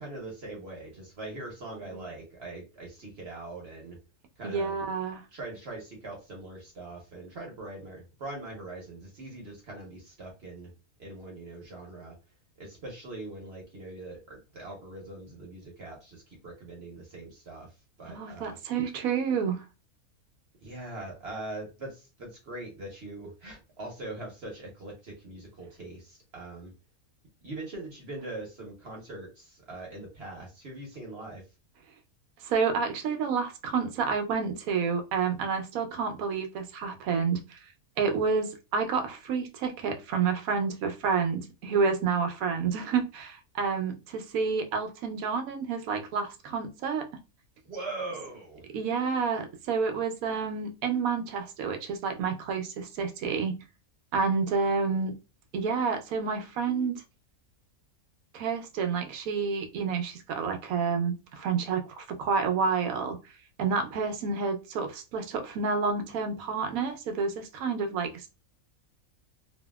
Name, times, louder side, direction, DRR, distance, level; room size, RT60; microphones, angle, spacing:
voice 1, 0.0-4.0 4.4-4.8 5.3-10.7 11.0-12.2 12.6-17.7 18.0-18.6 20.6-26.7 27.4-31.4 47.6-48.6, right 2 dB, 50° right, -1 dB, 1.0 m, -42 dB
voice 2, 4.4-5.2 18.1-19.6 32.4-37.6 38.0-47.1 48.7-53.6 54.1-55.2 55.5-57.0 58.3-63.2 63.6-68.3, right 5 dB, 75° right, 6 dB, 1.0 m, -29 dB
2.8 x 2.7 x 2.2 m, 0.29 s
omnidirectional pair, 1.5 m